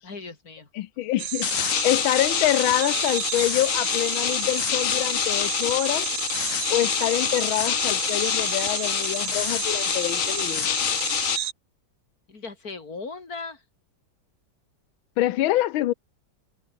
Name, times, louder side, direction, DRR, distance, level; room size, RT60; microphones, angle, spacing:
voice 1, 0.0-0.7 12.3-13.6, left 4 dB, 45° left, 4.0 m, -38 dB
voice 2, 0.7-6.1 6.7-10.7 15.2-15.9, left 14 dB, 90° left, 1.6 m, -26 dB
sound 1, 1.2-11.5, right 10 dB, 75° right, 1.8 m, -31 dB
sound 2, 1.4-11.4, left 12 dB, 70° left, 0.8 m, -27 dB
omnidirectional pair, 2.1 m